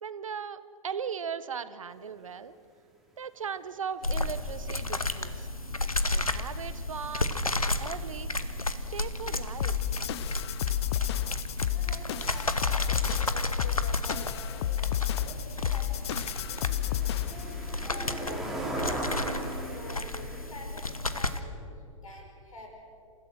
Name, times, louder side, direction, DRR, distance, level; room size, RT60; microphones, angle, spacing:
voice 1, 0.0-2.5 3.2-5.5 6.1-7.3 7.8-8.3 8.9-9.8, right 7 dB, 70° right, 14 dB, 1.0 m, -38 dB
sound 1, 4.0-21.4, left 2 dB, 85° left, 1.1 m, -33 dB
sound 2, 9.6-17.5, left 13 dB, 50° left, 0.7 m, -31 dB
voice 2, 11.6-14.8 15.2-15.9 16.3-17.6 17.8-18.7 19.6-21.6 22.0-22.7, left 2 dB, 70° left, 2 dB, 5.8 m, -47 dB
sound 3, 14.3-20.5, right 1 dB, ahead, 3.0 m, -38 dB
28.5 x 16.0 x 6.3 m, 2.5 s
figure-of-eight pair, 105°, 18 cm